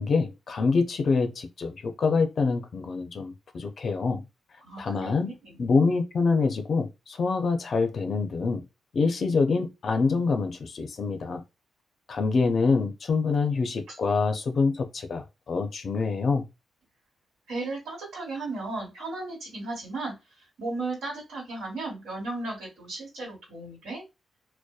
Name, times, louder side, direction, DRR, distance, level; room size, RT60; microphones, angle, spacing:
voice 1, 0.0-4.2 4.8-5.3 5.6-8.6 8.9-11.4 12.1-16.4, left 4 dB, 60° left, 0.4 m, -26 dB
voice 2, 4.6-5.6 13.9-14.0 17.5-20.1 20.6-24.0, right 2 dB, 85° right, 1.3 m, -35 dB
2.6 x 2.1 x 2.3 m
cardioid pair, 70°, 0 cm